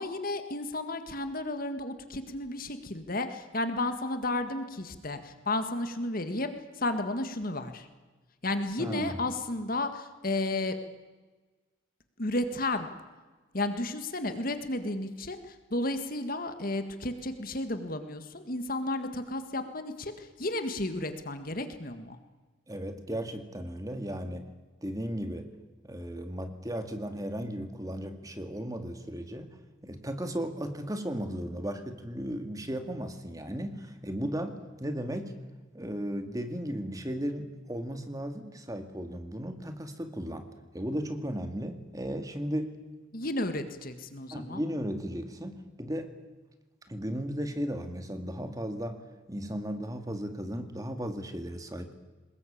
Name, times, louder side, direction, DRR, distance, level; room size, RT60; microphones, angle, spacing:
voice 1, 0.0-7.9 8.4-10.8 12.2-12.9 13.5-22.2 43.1-44.6, left 2 dB, 45° left, 9 dB, 1.8 m, -33 dB
voice 2, 8.8-9.2 22.7-24.5 24.8-25.5 25.8-29.6 29.8-35.3 35.7-42.8 44.3-46.1 46.9-49.0 49.3-51.9, equal, 15° right, 7 dB, 2.0 m, -35 dB
23.0 x 20.5 x 8.7 m, 1.3 s
head